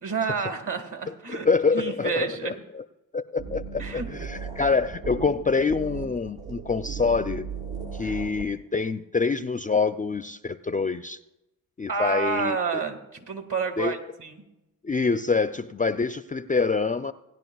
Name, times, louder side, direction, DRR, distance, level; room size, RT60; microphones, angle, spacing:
voice 1, 0.0-1.5 1.7-2.6 3.8-4.1 8.0-8.1 11.9-14.4, right 5 dB, 50° right, 6 dB, 1.9 m, -30 dB
voice 2, 1.3-2.8 3.1-7.5 7.9-11.2 11.8-12.8 13.8-13.9 14.8-17.1, left 4 dB, 20° left, 12 dB, 0.4 m, -26 dB
sound 1, 3.4-8.5, right 6 dB, 70° right, 1.9 m, -36 dB
18.5 x 10.5 x 2.3 m, 0.93 s
supercardioid pair, 40°, 39 cm